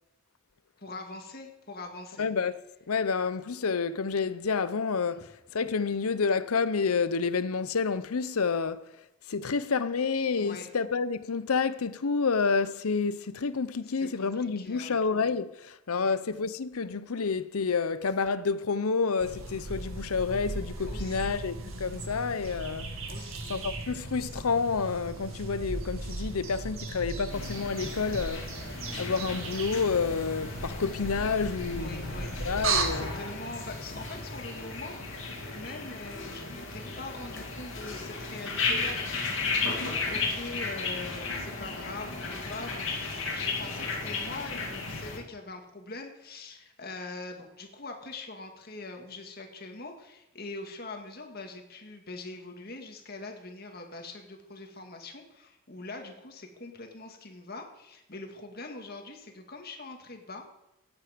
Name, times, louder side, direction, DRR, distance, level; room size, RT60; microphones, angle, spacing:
voice 1, 0.8-2.3 10.4-10.6 13.9-15.0 15.9-16.2 20.9-21.3 23.1-23.6 31.8-35.2 35.5-60.4, left 2 dB, 45° left, 1.9 m, -43 dB
voice 2, 2.2-2.5 2.9-8.9 9.3-22.9 23.5-28.5 29.0-33.2, left 5 dB, 90° left, 0.7 m, -29 dB
sound 1, 19.2-32.8, right 3 dB, 75° right, 2.1 m, -36 dB
sound 2, 27.3-45.2, left 3 dB, 60° left, 2.4 m, -35 dB
17.0 x 8.9 x 5.2 m
head